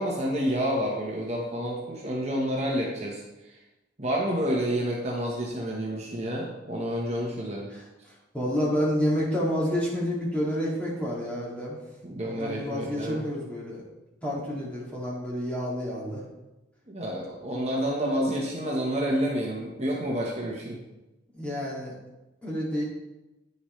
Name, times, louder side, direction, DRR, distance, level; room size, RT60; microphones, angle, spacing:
voice 1, 0.0-3.6 4.0-7.7 12.0-13.2 16.9-20.8, equal, 35° right, -3 dB, 1.2 m, -29 dB
voice 2, 7.7-11.8 12.2-13.8 14.2-16.2 21.3-21.9 22.4-22.8, equal, 5° left, -6 dB, 2.3 m, -29 dB
9.6 x 7.1 x 3.2 m, 1.0 s
head